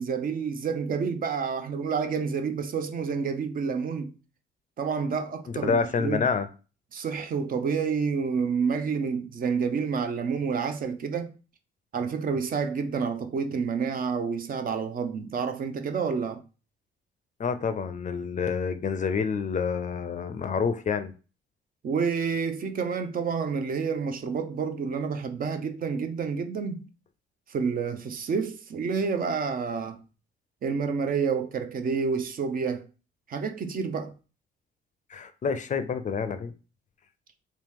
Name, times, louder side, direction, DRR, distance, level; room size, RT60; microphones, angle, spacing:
voice 1, 0.0-4.1 4.8-6.3 6.9-11.3 11.9-16.4 21.8-26.9 27.5-30.0 30.6-32.8 33.3-34.1, right 5 dB, 45° right, 0.5 m, -29 dB
voice 2, 5.5-6.5 17.4-21.1 35.1-36.5, left 5 dB, 40° left, 0.4 m, -28 dB
3.0 x 2.7 x 3.5 m
cardioid pair, 90°, 20 cm